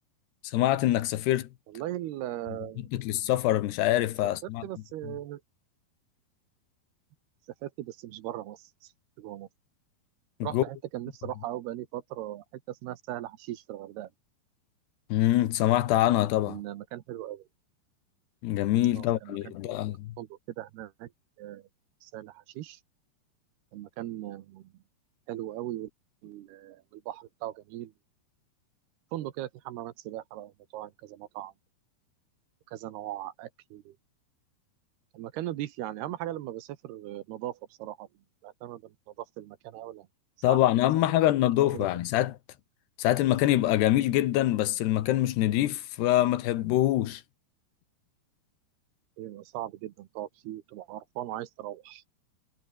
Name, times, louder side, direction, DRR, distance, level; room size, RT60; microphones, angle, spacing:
voice 1, 0.5-1.5 2.9-4.6 10.4-10.6 15.1-16.6 18.4-20.1 40.4-42.3 43.0-47.2, left 14 dB, 85° left, 3.4 m, -25 dB
voice 2, 1.7-2.9 4.4-5.4 7.6-8.9 9.2-9.5 10.4-14.1 16.4-17.5 18.9-19.5 20.2-21.1 21.4-21.7 22.0-22.8 23.7-24.7 25.3-25.9 26.2-27.9 29.1-31.5 32.7-34.0 35.1-38.1 38.4-40.1 40.5-40.6 41.7-41.9 49.2-52.0, right 14 dB, 80° right, 3.2 m, -39 dB
omnidirectional pair, 4.7 m